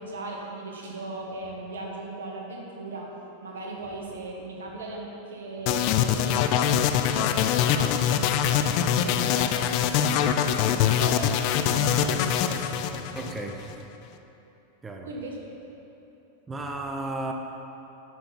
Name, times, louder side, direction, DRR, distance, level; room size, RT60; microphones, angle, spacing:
voice 1, 0.0-3.1 3.4-13.0 15.0-15.4 16.5-16.6, right 2 dB, 75° right, -1 dB, 1.6 m, -37 dB
sound 1, 5.7-13.7, left 9 dB, 50° left, 0.5 m, -24 dB
voice 2, 13.1-13.8 14.8-15.1 16.5-17.3, right 2 dB, 15° right, 2 dB, 0.8 m, -34 dB
13.0 x 5.8 x 4.2 m, 3.0 s
hypercardioid pair, 95°, 0 cm